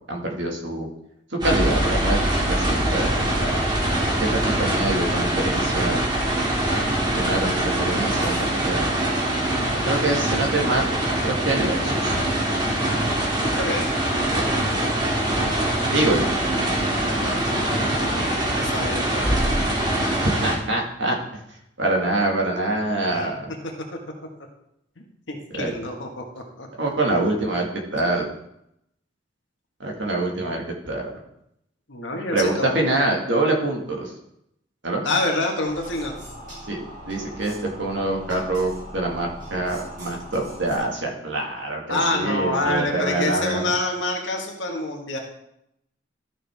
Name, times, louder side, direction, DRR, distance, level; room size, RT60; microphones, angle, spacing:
voice 1, 0.1-0.9 1.4-2.2 2.5-3.1 3.4-3.7 4.2-6.0 6.7-6.8 7.2-8.3 8.6-8.9 9.8-10.9 11.2-12.2 14.3-14.6 15.9-16.3 20.2-21.2 21.8-23.5 25.6-25.7 26.8-28.3 29.8-31.1 32.3-34.1 34.8-35.0 36.7-36.8 37.1-43.6, right 2 dB, 75° right, 0 dB, 1.9 m, -25 dB
sound 1, 1.4-20.6, right 1 dB, 25° right, 1.7 m, -23 dB
voice 2, 6.8-8.5 8.7-9.2 13.4-13.9 17.1-19.7 23.1-23.3 23.6-23.7 25.3-26.7 31.9-32.8 35.0-36.2 41.9-45.2, left 2 dB, 80° left, 1 dB, 1.6 m, -28 dB
sound 2, 35.7-40.8, equal, 45° right, 3.8 m, -40 dB
13.0 x 6.2 x 3.6 m, 0.79 s
head